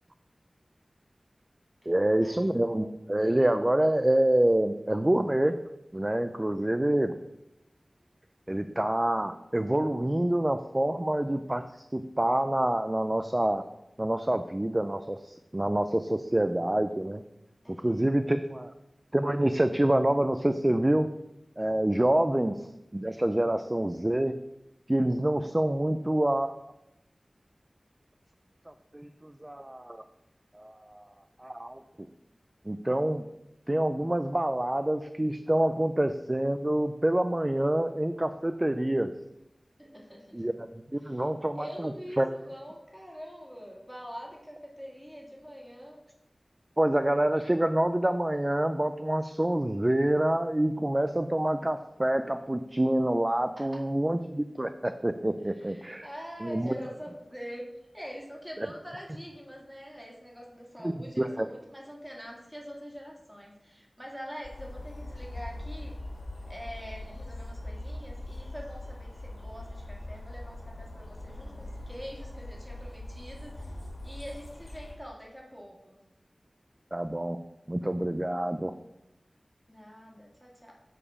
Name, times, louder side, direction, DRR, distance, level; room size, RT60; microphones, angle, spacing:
voice 1, 1.9-5.6 5.9-7.1 8.5-13.6 14.0-17.2 17.7-18.7 19.1-21.1 21.6-24.3 24.9-26.5 28.9-30.0 30.5-31.1 31.4-31.8 32.7-33.3 33.7-39.1 40.3-40.5 40.9-41.9 42.2-42.3 46.8-56.1 56.4-56.7 58.6-58.7 60.8-61.5 76.9-77.4 77.7-78.7, right 1 dB, 25° right, 9 dB, 0.3 m, -27 dB
voice 2, 17.6-18.3 39.8-40.4 41.0-41.2 41.6-46.0 53.6-53.8 55.5-66.0 66.4-73.8 74.0-76.0 79.7-80.7, equal, 5° right, -2 dB, 2.1 m, -44 dB
sound 1, 64.4-75.0, left 1 dB, 70° left, 2.0 m, -41 dB
7.4 x 5.0 x 4.8 m, 0.88 s
wide cardioid pair, 70°, 0 cm